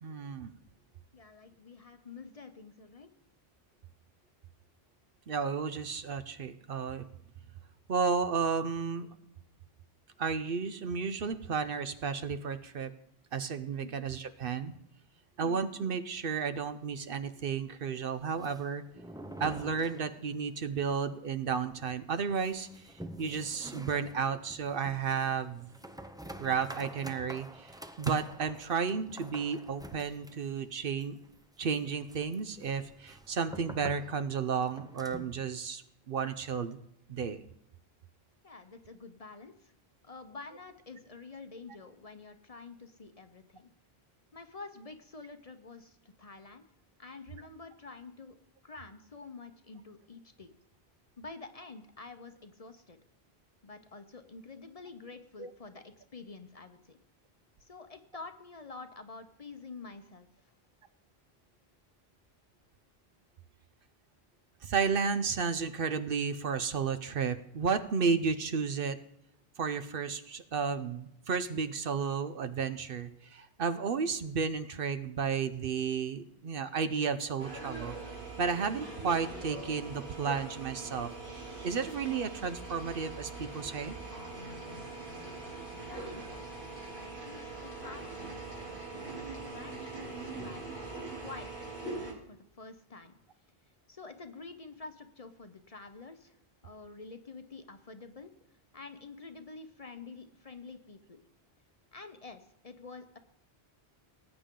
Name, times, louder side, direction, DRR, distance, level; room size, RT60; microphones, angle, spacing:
voice 1, 0.0-0.5 5.3-7.1 7.9-9.1 10.2-12.9 13.3-14.7 15.4-18.8 19.4-25.7 26.4-27.7 28.0-31.2 31.6-35.8 36.1-36.8 37.1-37.4 55.4-55.5 64.6-69.0 69.6-78.0 78.4-81.1 81.6-84.0, right 5 dB, 65° right, 11 dB, 0.9 m, -32 dB
voice 2, 1.1-3.1 13.8-13.9 15.4-15.6 38.4-39.7 40.0-43.7 44.3-46.6 47.0-48.4 48.6-50.5 51.2-53.0 53.6-57.0 57.6-60.3 85.4-86.7 86.9-93.2 93.9-96.4 96.6-98.3 98.7-101.2 101.9-103.2, left 4 dB, 40° left, 8 dB, 0.8 m, -48 dB
sound 1, 18.2-20.5 20.8-20.9 21.2-21.3 21.8-35.4, right 1 dB, 5° right, 0.4 m, -48 dB
sound 2, 77.4-92.1, right 3 dB, 85° right, 3.5 m, -42 dB
19.0 x 8.7 x 3.8 m, 0.77 s
omnidirectional pair, 1.0 m